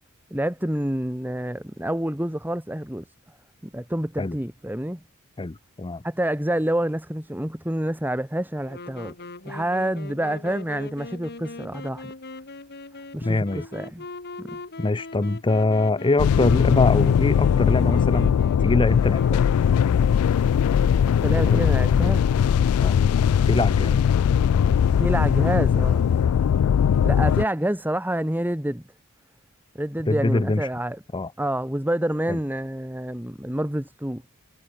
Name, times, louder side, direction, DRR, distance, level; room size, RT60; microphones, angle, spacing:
voice 1, 0.3-3.0 3.6-5.0 6.0-9.1 9.4-12.1 13.1-14.1 14.4-14.6 21.2-22.2 25.0-26.1 27.0-28.8 29.7-31.0 31.4-34.2, right 1 dB, 10° right, 2.4 m, -27 dB
voice 2, 5.4-6.0 13.2-13.7 14.8-19.4 21.5-21.8 22.8-23.0 23.5-24.0 30.1-30.7 31.1-31.3 32.3-32.4, left 2 dB, 20° left, 0.6 m, -23 dB
Wind instrument woodwind instrument, 8.7-20.4, left 2 dB, 50° left, 3.5 m, -40 dB
sound 1, 16.2-27.5, left 8 dB, 70° left, 0.3 m, -20 dB
head